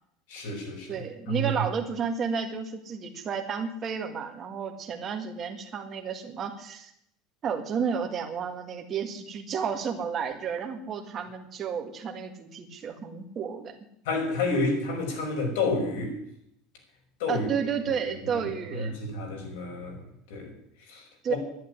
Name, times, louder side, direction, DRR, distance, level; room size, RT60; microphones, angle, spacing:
voice 1, 0.3-1.0 1.3-1.5 14.1-16.1 17.2-17.7 18.3-18.4 18.8-20.0 20.3-20.5 20.9-21.4, left 2 dB, 85° left, 1 dB, 5.6 m, -30 dB
voice 2, 0.9-6.9 7.4-13.7 17.3-18.9 21.2-21.3, right 6 dB, 25° right, 4 dB, 1.8 m, -32 dB
11.0 x 10.5 x 10.0 m, 0.76 s
cardioid pair, 175°, 0 cm